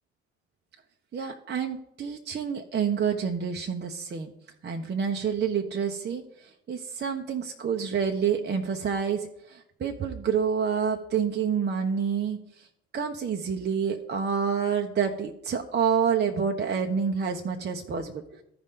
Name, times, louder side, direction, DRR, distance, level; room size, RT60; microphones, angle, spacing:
voice 1, 1.1-4.3 4.6-12.7 12.9-18.2, right 7 dB, 35° right, 3 dB, 0.9 m, -28 dB
13.5 x 5.2 x 3.7 m, 0.79 s
hypercardioid pair, 55°, 31 cm